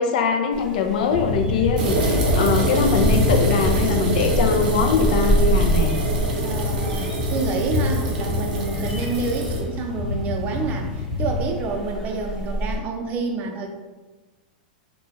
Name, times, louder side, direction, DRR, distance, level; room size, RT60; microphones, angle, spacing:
voice 1, 0.0-5.9, left 5 dB, 65° left, 5 dB, 0.4 m, -22 dB
sound 1, 0.5-12.8, right 2 dB, ahead, 0.8 m, -29 dB
sound 2, 1.1-11.5, left 2 dB, 80° left, 1.0 m, -26 dB
sound 3, 1.8-9.6, right 2 dB, 70° right, 0.7 m, -26 dB
voice 2, 6.4-13.7, right 3 dB, 35° right, 3 dB, 0.5 m, -28 dB
2.9 x 2.3 x 3.0 m, 1.3 s
hypercardioid pair, 130°, 5 cm